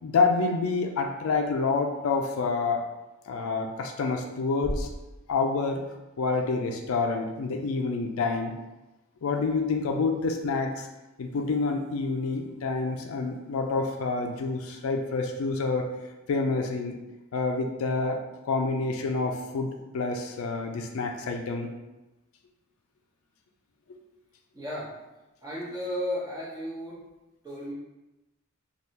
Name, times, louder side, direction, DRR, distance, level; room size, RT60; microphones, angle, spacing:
voice 1, 0.0-2.8 3.3-4.9 5.3-5.8 6.2-8.6 9.2-10.9 11.2-15.9 16.3-17.0 17.3-21.7, left 4 dB, 75° left, 4 dB, 0.4 m, -28 dB
sound 1, 4.6-6.7, equal, ahead, 0.6 m, -38 dB
voice 2, 24.5-24.9 25.4-27.0 27.4-27.7, equal, 20° right, -8 dB, 1.0 m, -34 dB
3.4 x 2.3 x 2.8 m, 1.0 s
head